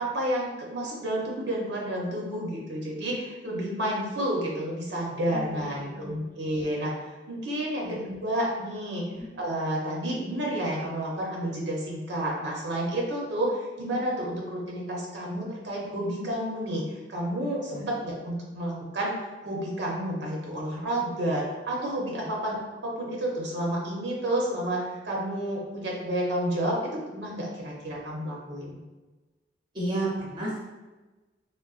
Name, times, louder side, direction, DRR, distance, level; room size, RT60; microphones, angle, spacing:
voice 1, 0.0-9.1 9.4-19.1 19.4-28.8, right 1 dB, 80° right, -3 dB, 0.7 m, -30 dB
voice 2, 5.3-6.3 7.8-7.9 9.1-9.3 17.6-17.9 22.2-22.3 29.7-30.7, right 2 dB, 25° right, -5 dB, 0.6 m, -33 dB
3.8 x 2.1 x 2.3 m, 1.2 s
head